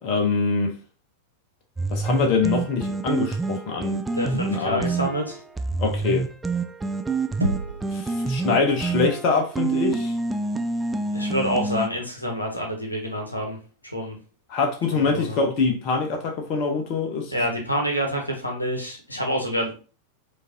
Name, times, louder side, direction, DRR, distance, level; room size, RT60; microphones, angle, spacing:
voice 1, 0.0-0.7 1.9-4.0 4.5-4.8 5.8-6.2 7.9-10.1 14.5-17.3, left 4 dB, 40° left, 0.8 m, -24 dB
sound 1, 1.8-11.9, right 3 dB, 10° right, 0.4 m, -27 dB
voice 2, 4.2-5.4 11.1-13.6 13.9-14.2 14.9-15.4 17.3-19.7, equal, 85° left, 1.0 m, -27 dB
Knock, 7.4-8.1, right 1 dB, 85° right, 0.3 m, -27 dB
4.8 x 2.6 x 2.8 m
figure-of-eight pair, 90°, 0 cm